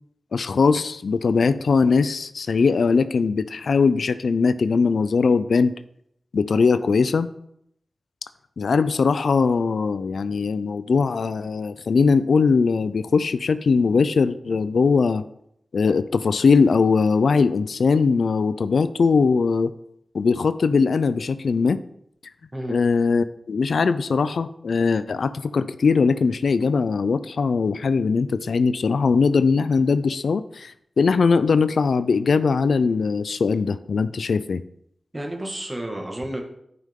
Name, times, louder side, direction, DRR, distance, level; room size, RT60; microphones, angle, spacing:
voice 1, 0.3-5.7 6.3-7.3 8.6-15.2 15.7-19.7 20.1-21.8 22.7-34.6, left 5 dB, 80° left, 13 dB, 0.4 m, -20 dB
voice 2, 35.1-36.4, right 1 dB, 25° right, 2 dB, 1.9 m, -31 dB
10.5 x 5.6 x 3.7 m, 0.74 s
cardioid pair, 45°, 0 cm